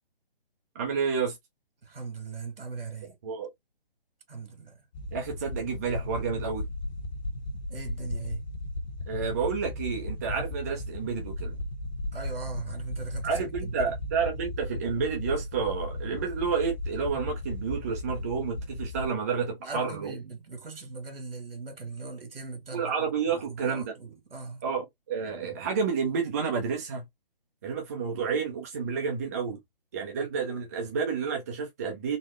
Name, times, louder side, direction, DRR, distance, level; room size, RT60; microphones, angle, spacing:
voice 1, 0.7-1.4 3.2-3.5 5.1-6.7 9.1-11.6 13.2-20.2 22.7-23.9 24.6-27.1 27.6-29.6 29.9-32.2, right 5 dB, 15° right, 0.6 m, -30 dB
voice 2, 1.8-3.2 4.3-4.8 7.7-8.4 12.1-13.9 19.6-22.9 23.3-24.6 30.2-30.3, right 4 dB, 75° right, 2.0 m, -40 dB
sound 1, 4.9-19.1, left 1 dB, 45° left, 1.0 m, -36 dB
4.0 x 2.1 x 3.0 m
hypercardioid pair, 160°, 29 cm